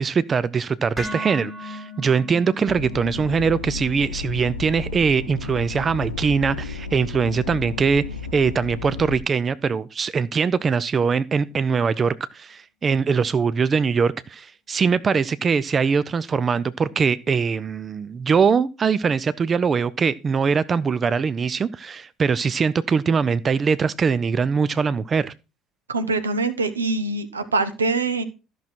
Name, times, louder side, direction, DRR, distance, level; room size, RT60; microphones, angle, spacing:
voice 1, 0.0-8.0 8.3-25.3, right 5 dB, 35° right, 0.5 m, -22 dB
sound 1, 1.0-9.1, left 1 dB, 15° right, 5.1 m, -40 dB
sound 2, 2.7-9.2, left 4 dB, 90° left, 0.8 m, -33 dB
voice 2, 25.9-28.2, right 3 dB, 85° right, 0.9 m, -24 dB
13.0 x 6.4 x 4.3 m
figure-of-eight pair, 55°, 0 cm